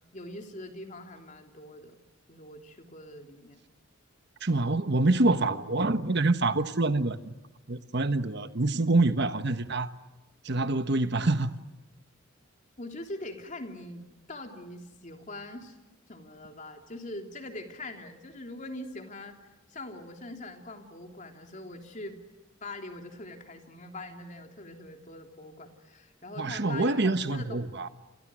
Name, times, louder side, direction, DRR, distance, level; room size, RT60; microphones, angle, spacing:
voice 1, 0.1-2.0 2.3-3.6 12.8-15.7 16.1-22.2 22.6-27.6, left 2 dB, 35° left, 3.2 m, -43 dB
voice 2, 4.4-7.4 7.7-9.9 10.4-11.5 26.4-27.9, right 2 dB, 55° right, 1.3 m, -26 dB
29.5 x 28.0 x 6.3 m
head